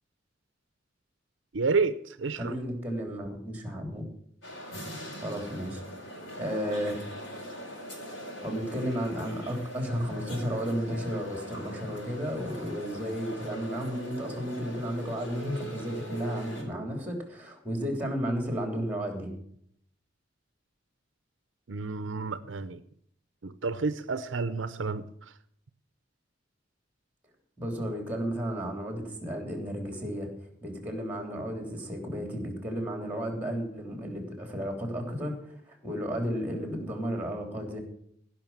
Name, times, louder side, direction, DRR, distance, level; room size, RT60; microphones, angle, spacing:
voice 1, 1.5-2.5 21.7-22.8 23.4-25.0, right 4 dB, 75° right, 12 dB, 0.7 m, -30 dB
voice 2, 2.4-4.1 5.2-5.8 6.1-7.0 8.4-19.3 27.6-30.3 30.6-35.4 35.7-37.8, equal, 10° right, 4 dB, 3.2 m, -33 dB
sound 1, 4.4-16.6, equal, 70° left, 4.4 m, -41 dB
16.5 x 6.0 x 7.3 m, 0.67 s
head